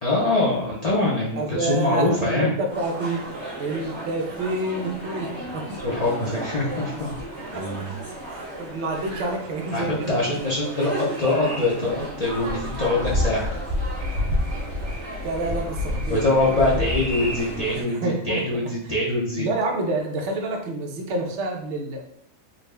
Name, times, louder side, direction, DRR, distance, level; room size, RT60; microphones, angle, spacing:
voice 1, 0.0-2.5 5.8-7.1 7.5-7.9 9.7-13.5 16.1-18.0 18.2-19.5, left 2 dB, 50° left, -6 dB, 0.5 m, -23 dB
voice 2, 1.3-5.8 7.5-7.9 8.3-10.4 15.2-16.9 17.7-18.7 19.4-22.0, right 2 dB, 65° right, 1 dB, 0.9 m, -28 dB
sound 1, 2.7-17.8, equal, 35° right, 1.5 m, -31 dB
3.8 x 2.0 x 3.2 m, 0.70 s
omnidirectional pair, 1.4 m